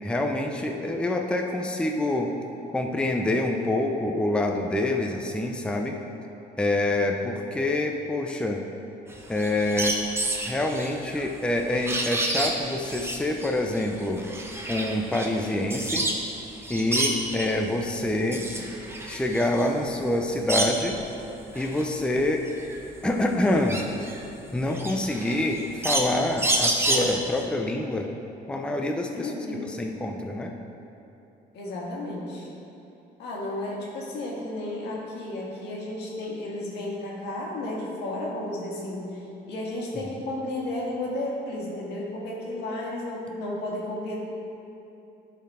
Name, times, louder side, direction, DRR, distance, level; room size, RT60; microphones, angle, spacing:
voice 1, 0.0-2.3 2.7-6.0 6.6-8.6 9.3-10.0 10.4-14.2 14.7-16.1 16.7-18.4 19.0-21.0 21.5-22.5 23.0-23.9 24.5-28.1 28.5-29.3 29.8-30.5, left 1 dB, 5° left, 2 dB, 0.5 m, -26 dB
sound 1, 9.1-16.3 16.6-17.6 18.1-21.0 21.4-27.4, right 1 dB, 15° right, 0.9 m, -29 dB
voice 2, 18.0-18.5 29.1-29.7 31.5-32.5 33.2-44.2, left 1 dB, 75° left, -4 dB, 1.8 m, -33 dB
11.5 x 4.3 x 4.2 m, 2.9 s
cardioid pair, 110°, 17 cm